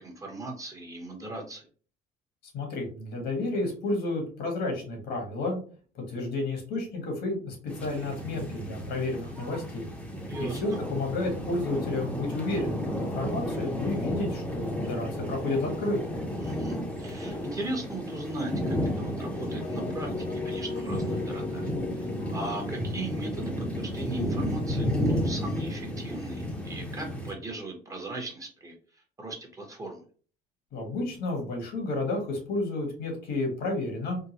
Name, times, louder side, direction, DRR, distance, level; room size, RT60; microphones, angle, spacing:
voice 1, 0.0-1.7 10.3-10.8 16.4-30.0, right 2 dB, 20° right, 1 dB, 0.9 m, -38 dB
voice 2, 2.5-5.6 5.9-9.9 10.4-16.0 30.7-34.2, left 2 dB, 75° left, 2 dB, 1.5 m, -31 dB
sound 1, 7.7-27.3, equal, 5° left, 0.7 m, -33 dB
sound 2, 19.6-25.4, left 4 dB, 35° left, 0.4 m, -39 dB
3.7 x 2.2 x 2.8 m, 0.40 s
cardioid pair, 110°, 17 cm